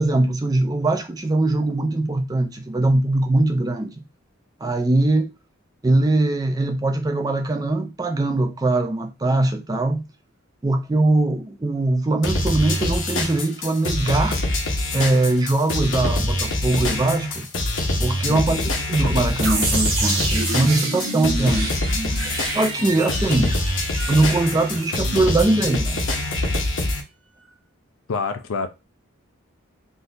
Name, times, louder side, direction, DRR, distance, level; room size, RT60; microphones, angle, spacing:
voice 1, 0.0-4.0 4.6-5.3 5.8-10.0 10.6-14.4 14.9-17.5 18.0-21.8 22.5-23.6 24.1-26.0, right 2 dB, 20° right, 0.4 m, -21 dB
sound 1, 12.2-27.0, left 1 dB, 60° left, 0.8 m, -24 dB
voice 2, 18.3-18.7 22.8-23.3 28.1-28.7, left 4 dB, 80° left, 0.5 m, -29 dB
sound 2, 19.4-26.2, right 3 dB, 65° right, 1.0 m, -29 dB
3.7 x 2.7 x 2.5 m
head